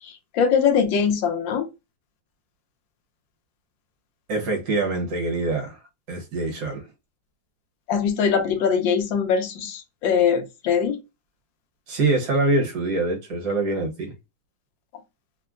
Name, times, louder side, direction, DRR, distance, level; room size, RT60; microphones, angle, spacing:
voice 1, 0.0-1.7 7.9-11.0, left 7 dB, 80° left, 1.4 m, -22 dB
voice 2, 4.3-5.8 6.1-6.9 11.9-14.1, right 2 dB, 60° right, 1.6 m, -24 dB
3.7 x 2.1 x 2.4 m
omnidirectional pair, 2.0 m